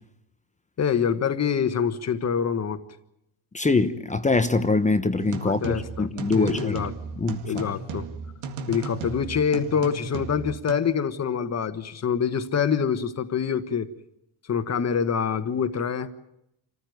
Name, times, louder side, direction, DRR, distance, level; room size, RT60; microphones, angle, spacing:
voice 1, 0.8-2.8 5.4-6.1 6.4-6.9 7.4-8.0 8.7-13.9 14.5-16.1, left 7 dB, 30° left, 1.4 m, -25 dB
voice 2, 3.5-6.8 7.2-7.7, left 3 dB, 15° left, 0.9 m, -23 dB
sound 1, 5.2-10.8, right 5 dB, 90° right, 2.1 m, -35 dB
26.5 x 15.0 x 9.4 m
cardioid pair, 125°, 48 cm